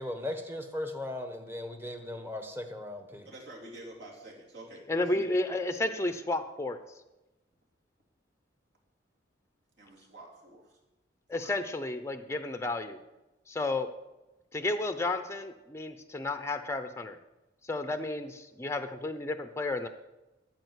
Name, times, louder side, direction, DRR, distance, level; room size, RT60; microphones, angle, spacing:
voice 1, 0.0-3.3, left 1 dB, 10° right, 6 dB, 1.1 m, -37 dB
voice 2, 3.2-5.3 9.8-10.8 11.3-11.5, right 1 dB, 60° right, -3 dB, 3.2 m, -48 dB
voice 3, 4.9-6.8 11.3-13.0 13.5-13.9 14.5-17.2 17.6-19.9, left 2 dB, 15° left, 8 dB, 0.6 m, -32 dB
14.0 x 4.9 x 8.2 m, 1.0 s
head